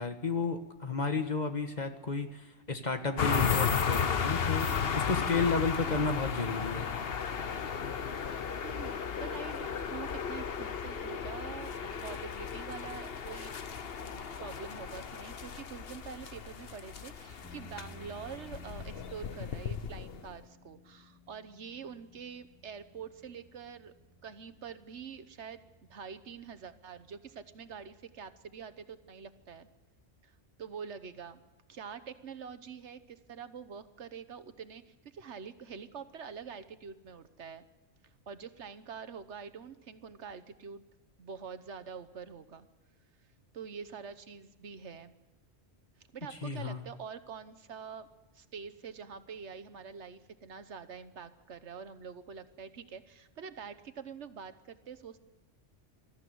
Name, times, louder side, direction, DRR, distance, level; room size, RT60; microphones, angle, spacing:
voice 1, 0.0-6.9 46.4-46.8, left 4 dB, 40° left, 6 dB, 1.6 m, -32 dB
sound 1, 3.2-20.4, left 6 dB, 60° left, 1.2 m, -34 dB
voice 2, 8.6-23.9 24.2-25.6 25.9-29.7 30.2-30.3 30.6-31.4 31.7-37.6 38.3-40.8 41.2-42.7 43.5-45.1 46.1-48.1 48.3-55.2, right 6 dB, 80° right, 11 dB, 1.4 m, -45 dB
sound 2, 17.4-29.9, equal, 5° left, 4.5 m, -57 dB
21.0 x 14.0 x 9.3 m, 1.1 s
omnidirectional pair, 1.2 m